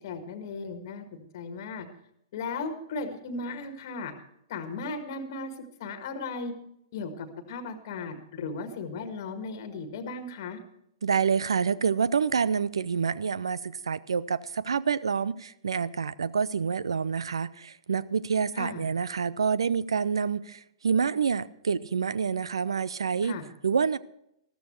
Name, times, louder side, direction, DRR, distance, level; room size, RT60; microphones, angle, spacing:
voice 1, 0.0-1.9 2.3-4.1 4.5-5.5 5.8-6.5 6.9-10.6 18.5-18.8 23.2-23.4, left 3 dB, 45° left, 1.6 m, -36 dB
voice 2, 11.0-23.4 23.6-24.0, right 6 dB, 65° right, 0.5 m, -27 dB
14.0 x 13.5 x 4.5 m
figure-of-eight pair, 110°, 3 cm